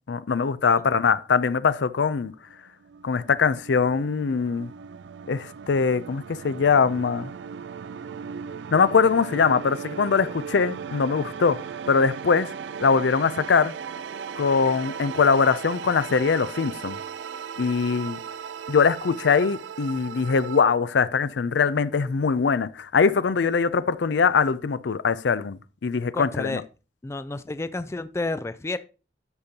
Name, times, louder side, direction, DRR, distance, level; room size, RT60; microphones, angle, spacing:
voice 1, 0.1-2.3 3.0-4.7 5.3-7.3 8.7-11.6 11.9-12.5 12.8-13.7 14.4-17.0 17.6-18.2 18.7-26.6, left 5 dB, 85° left, 0.5 m, -22 dB
sound 1, 2.3-20.6, right 7 dB, 85° right, 0.4 m, -37 dB
voice 2, 26.1-26.6 27.0-28.8, left 2 dB, 15° left, 0.3 m, -30 dB
12.5 x 5.3 x 2.8 m
head